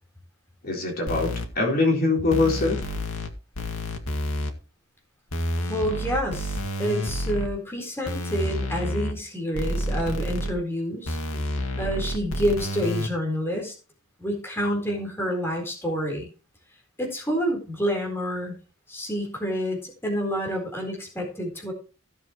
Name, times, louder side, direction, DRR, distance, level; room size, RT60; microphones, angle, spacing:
voice 1, 0.6-2.9, left 3 dB, 45° left, 4.0 m, -23 dB
sound 1, 1.1-1.5 2.3-3.3 3.6-4.5 5.3-7.5 8.1-9.1 9.6-10.5 11.1-13.1, left 1 dB, 90° left, 2.1 m, -29 dB
voice 2, 5.7-11.2 11.8-13.7 14.2-16.3 17.0-18.5 18.9-21.7, equal, 10° left, 4.1 m, -28 dB
16.5 x 7.2 x 3.1 m
head